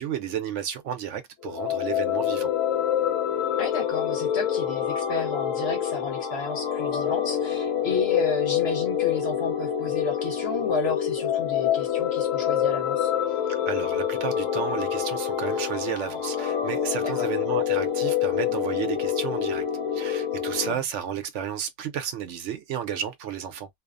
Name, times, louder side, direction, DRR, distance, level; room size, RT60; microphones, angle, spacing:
voice 1, 0.0-2.5 13.5-19.6 19.9-23.7, right 9 dB, 70° right, 0.8 m, -32 dB
sound 1, 1.4-20.7, left 9 dB, 90° left, 1.1 m, -26 dB
voice 2, 3.6-13.1 17.0-17.3 20.6-20.8, left 4 dB, 60° left, 1.1 m, -32 dB
2.6 x 2.0 x 2.4 m
omnidirectional pair, 1.3 m